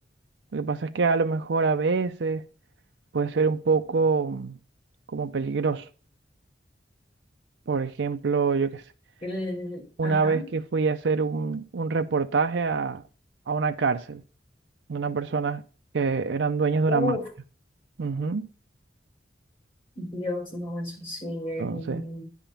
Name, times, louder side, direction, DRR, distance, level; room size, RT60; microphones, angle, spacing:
voice 1, 0.5-2.4 3.1-4.6 5.1-5.9 7.7-8.8 10.0-13.0 13.5-14.2 14.9-15.6 15.9-17.2 18.0-18.5 21.6-22.0, right 4 dB, 80° right, 0.5 m, -25 dB
voice 2, 9.2-10.4 16.9-17.3 20.0-22.2, left 1 dB, 30° left, 3.9 m, -32 dB
10.0 x 3.6 x 7.0 m
head